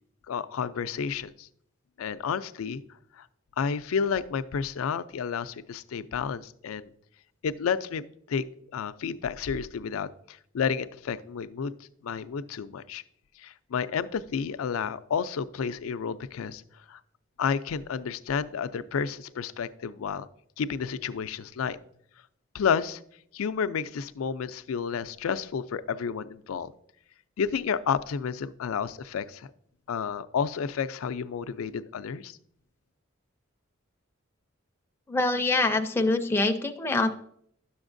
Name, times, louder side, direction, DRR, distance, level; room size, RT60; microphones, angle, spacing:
voice 1, 0.3-1.5 2.0-2.8 3.2-3.3 3.6-6.9 7.4-8.4 8.7-11.7 12.0-13.0 13.4-16.6 16.9-17.0 17.4-20.3 20.6-21.8 22.5-23.0 23.3-26.7 27.4-29.5 29.9-32.4, left 6 dB, 90° left, 13 dB, 0.4 m, -31 dB
voice 2, 35.1-37.1, left 2 dB, 10° left, 5 dB, 0.4 m, -25 dB
10.5 x 7.1 x 2.5 m, 0.68 s
head